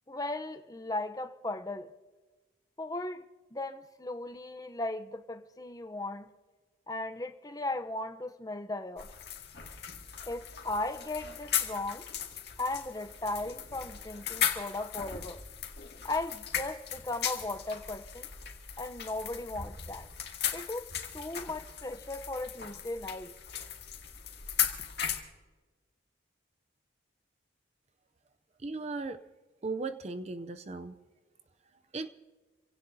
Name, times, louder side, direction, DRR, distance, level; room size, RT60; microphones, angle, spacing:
voice 1, 0.1-1.9 2.8-3.2 3.5-6.3 6.9-9.1 10.3-12.1 12.6-15.4 16.0-18.3 18.8-20.1 20.5-23.3, left 2 dB, 20° left, 0.7 m, -37 dB
sound 1, 9.0-25.2, left 9 dB, 55° left, 2.1 m, -37 dB
voice 2, 28.6-29.2 29.6-30.9 31.9-32.1, right 3 dB, 35° right, 0.5 m, -36 dB
28.0 x 17.0 x 2.7 m
head